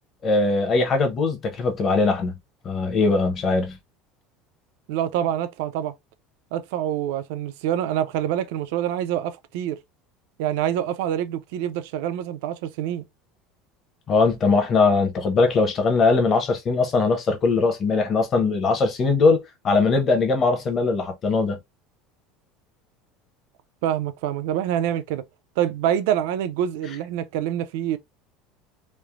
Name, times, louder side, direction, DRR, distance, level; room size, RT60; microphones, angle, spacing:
voice 1, 0.2-2.3 2.6-3.8 14.1-21.6, left 3 dB, 30° left, 0.7 m, -21 dB
voice 2, 4.9-5.9 6.5-9.8 10.4-13.0 23.8-25.2 25.6-28.0, right 10 dB, 75° right, 0.4 m, -26 dB
3.1 x 2.0 x 2.3 m
cardioid pair, 160°, 0 cm